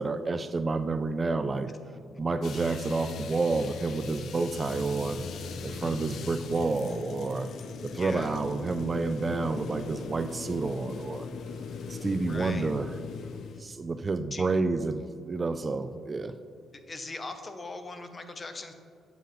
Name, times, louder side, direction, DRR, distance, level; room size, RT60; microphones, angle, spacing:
voice 1, 0.0-1.7 2.2-5.2 5.6-7.5 7.8-11.3 11.9-12.9 13.6-16.3, right 3 dB, 30° right, 10 dB, 0.3 m, -29 dB
sound 1, 2.4-13.6, left 5 dB, 65° left, 0.5 m, -40 dB
voice 2, 7.9-8.4 12.3-12.7 14.3-14.5 16.9-18.7, left 3 dB, 30° left, 7 dB, 0.7 m, -40 dB
7.6 x 6.9 x 3.0 m, 2.2 s
cardioid pair, 90°, 0 cm